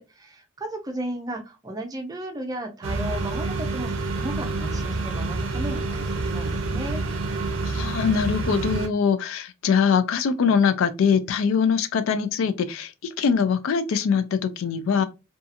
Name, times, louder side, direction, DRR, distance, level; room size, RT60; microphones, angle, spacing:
voice 1, 0.0-7.0, right 1 dB, 20° right, 0.5 m, -34 dB
sound 1, 2.8-8.9, right 3 dB, 65° right, 0.5 m, -28 dB
voice 2, 7.6-15.0, left 6 dB, 75° left, 0.3 m, -23 dB
2.7 x 2.4 x 2.4 m
head